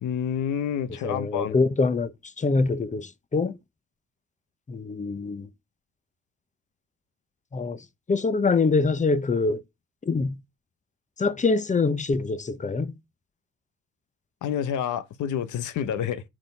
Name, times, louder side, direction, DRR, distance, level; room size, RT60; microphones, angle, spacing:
voice 1, 0.0-1.6 14.4-16.2, left 8 dB, 75° left, 1.0 m, -28 dB
voice 2, 1.0-3.6 4.7-5.5 7.5-9.6 10.0-10.4 11.2-13.0, left 4 dB, 25° left, 0.8 m, -25 dB
6.4 x 6.3 x 5.3 m
cardioid pair, 90°, 30 cm